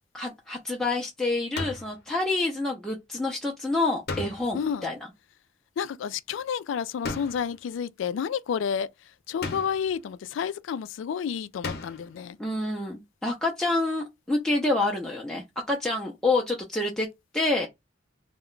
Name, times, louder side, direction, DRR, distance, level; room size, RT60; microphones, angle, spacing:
voice 1, 0.1-4.9 12.4-17.1 17.3-17.7, left 2 dB, 5° left, 0.4 m, -27 dB
sound 1, 1.6-2.0 4.1-4.7 7.0-7.6 9.4-10.0 11.6-12.2, left 3 dB, 55° left, 0.7 m, -35 dB
voice 2, 4.5-4.9 5.8-8.9 9.3-12.4, left 7 dB, 75° left, 0.3 m, -30 dB
2.2 x 2.1 x 3.7 m
head